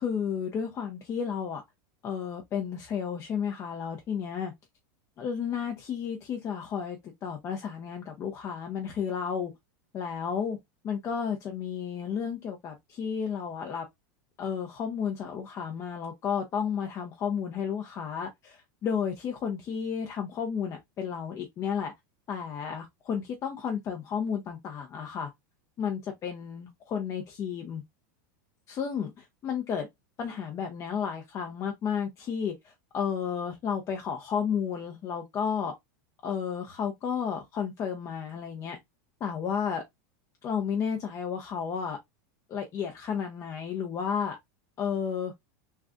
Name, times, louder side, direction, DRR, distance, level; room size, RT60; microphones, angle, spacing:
voice 1, 0.0-1.6 2.0-4.5 5.2-9.5 9.9-10.6 10.8-13.8 14.4-21.9 22.3-25.3 25.8-27.8 28.7-29.9 30.2-35.7 36.2-38.8 39.2-39.8 40.4-42.0 42.5-44.4 44.8-45.3, left 7 dB, 30° left, 0.6 m, -32 dB
3.7 x 2.3 x 2.3 m
supercardioid pair, 135°, 10 cm